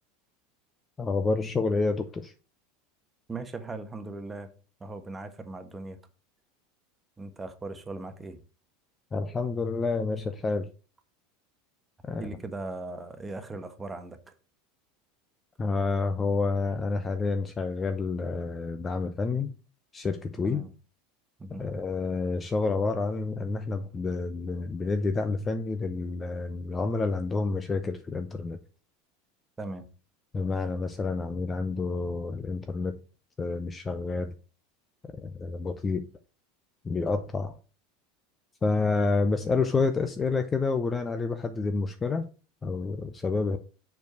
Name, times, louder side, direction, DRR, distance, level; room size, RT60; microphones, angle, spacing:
voice 1, 1.0-2.3 9.1-10.7 12.1-12.2 15.6-19.5 19.9-20.6 21.6-28.6 30.3-33.0 33.4-34.3 35.1-36.1 36.8-37.6 38.6-42.3 42.6-43.6, left 3 dB, 25° left, 0.7 m, -29 dB
voice 2, 3.3-4.5 4.8-6.0 7.2-8.4 12.2-14.3 20.4-20.7 21.4-21.6 29.6-29.9, right 2 dB, 15° right, 1.3 m, -38 dB
6.9 x 4.7 x 4.7 m
hypercardioid pair, 80°, 0 cm